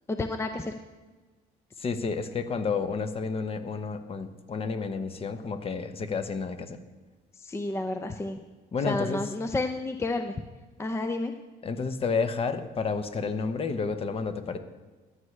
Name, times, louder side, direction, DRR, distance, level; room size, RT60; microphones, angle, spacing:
voice 1, 0.1-0.7 7.4-8.4 8.8-10.3 10.8-11.3, left 2 dB, 15° left, 7 dB, 0.5 m, -30 dB
voice 2, 1.8-6.8 8.7-9.2 11.6-14.6, left 5 dB, 35° left, 9 dB, 0.9 m, -30 dB
14.0 x 9.7 x 3.3 m, 1.3 s
cardioid pair, 110°, 17 cm